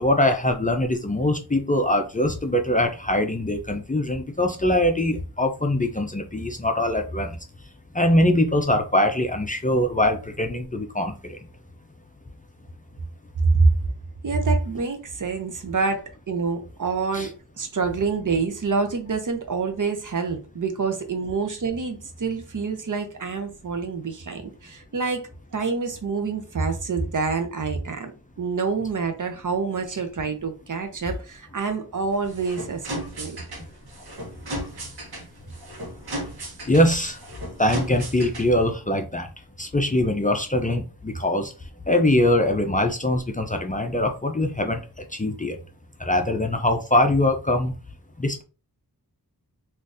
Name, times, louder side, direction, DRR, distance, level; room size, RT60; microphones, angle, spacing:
voice 1, 0.0-7.3 7.9-11.4 17.1-17.3 36.7-37.2 37.6-39.3 39.6-41.5 41.9-44.8 45.1-45.6 46.0-47.7 48.2-48.4, left 1 dB, 20° left, 0.4 m, -22 dB
voice 2, 14.2-28.1 28.4-33.4, right 4 dB, 55° right, 0.7 m, -26 dB
sound 1, 32.1-38.7, right 1 dB, 75° right, 1.0 m, -36 dB
3.7 x 2.5 x 2.5 m
wide cardioid pair, 75°, 38 cm